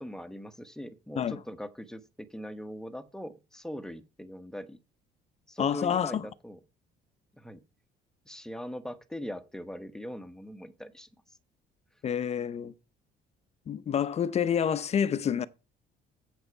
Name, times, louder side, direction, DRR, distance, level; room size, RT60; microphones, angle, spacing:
voice 1, 0.0-4.8 5.5-6.6 7.4-7.6 8.2-11.4, equal, 5° left, 1.0 m, -41 dB
voice 2, 5.6-6.2 12.0-12.7 13.7-15.5, left 8 dB, 40° left, 0.7 m, -28 dB
8.0 x 7.0 x 4.7 m
cardioid pair, 110°, 17 cm